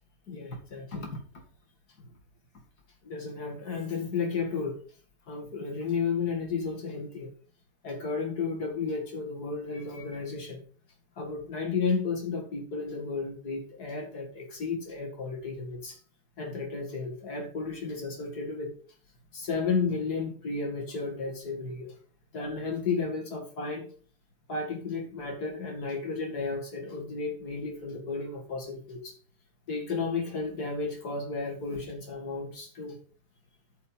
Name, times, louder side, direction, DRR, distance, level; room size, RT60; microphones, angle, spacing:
voice 1, 0.3-1.2 3.0-4.8 5.3-7.3 7.8-10.6 11.2-16.0 16.4-18.7 19.3-21.9 22.3-23.9 24.5-29.2 29.7-33.0, left 4 dB, 65° left, 2 dB, 2.7 m, -33 dB
13.0 x 5.1 x 5.5 m, 0.42 s
omnidirectional pair, 1.9 m